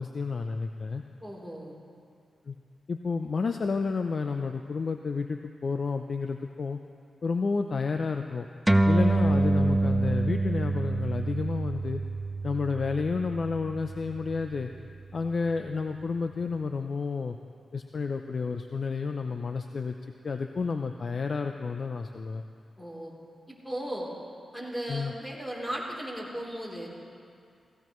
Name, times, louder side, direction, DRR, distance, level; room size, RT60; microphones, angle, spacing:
voice 1, 0.0-1.0 2.5-2.6 2.9-6.8 7.2-8.5 8.9-12.0 12.4-14.7 15.1-17.4 17.7-20.0 20.2-22.4 24.9-25.1, left 4 dB, 55° left, 6 dB, 0.5 m, -30 dB
voice 2, 1.2-1.8 22.8-23.1 23.5-24.1 24.5-26.9, right 1 dB, 5° left, -3 dB, 3.4 m, -36 dB
sound 1, 8.7-15.5, right 2 dB, 10° right, 0.6 m, -27 dB
17.0 x 16.0 x 3.1 m, 2.4 s
cardioid pair, 65°, 0 cm